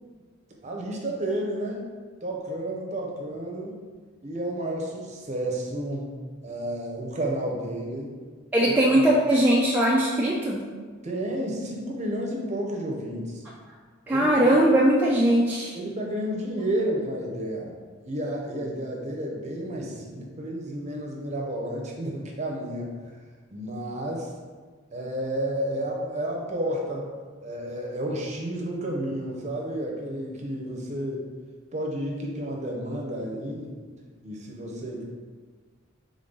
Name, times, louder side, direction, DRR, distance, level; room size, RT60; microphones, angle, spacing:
voice 1, 0.6-1.8 2.2-3.8 4.2-6.1 6.4-8.1 11.0-13.4 14.1-14.3 15.7-17.7 18.0-23.2 23.5-24.3 24.9-27.1 27.4-31.2 31.7-33.8 34.2-35.0, right 1 dB, 35° right, -1 dB, 0.7 m, -31 dB
voice 2, 8.5-10.6 14.1-15.7, right 1 dB, 10° right, -5 dB, 0.3 m, -20 dB
3.8 x 3.6 x 3.9 m, 1.5 s
head